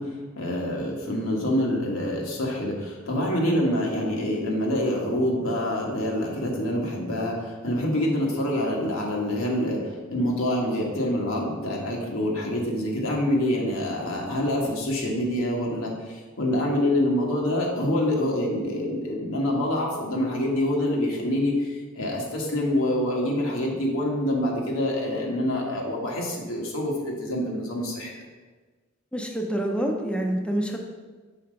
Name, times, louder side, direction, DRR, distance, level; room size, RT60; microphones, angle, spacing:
voice 1, 0.0-28.1, left 1 dB, 85° left, -1 dB, 1.4 m, -26 dB
voice 2, 29.1-30.8, right 1 dB, 5° left, 1 dB, 0.5 m, -27 dB
5.7 x 4.2 x 5.1 m, 1.4 s
head